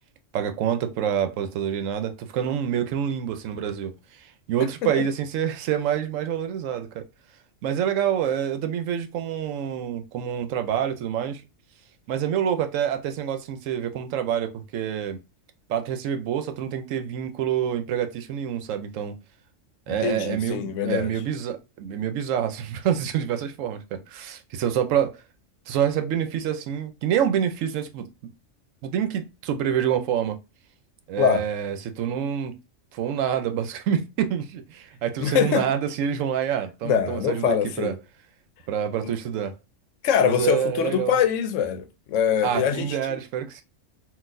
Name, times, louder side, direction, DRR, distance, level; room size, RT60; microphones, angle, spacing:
voice 1, 0.3-3.9 4.2-7.0 7.6-11.4 12.1-15.2 15.7-19.1 19.9-25.2 25.7-28.1 28.8-30.4 31.1-32.5 32.9-37.9 38.7-39.5 40.2-41.2 42.4-43.6, right 9 dB, 85° right, 1.0 m, -27 dB
voice 2, 19.9-21.1 31.2-31.4 35.2-35.7 36.8-38.0 39.0-39.1 40.0-43.2, left 8 dB, 80° left, 0.9 m, -24 dB
3.9 x 2.5 x 2.5 m
omnidirectional pair, 1.3 m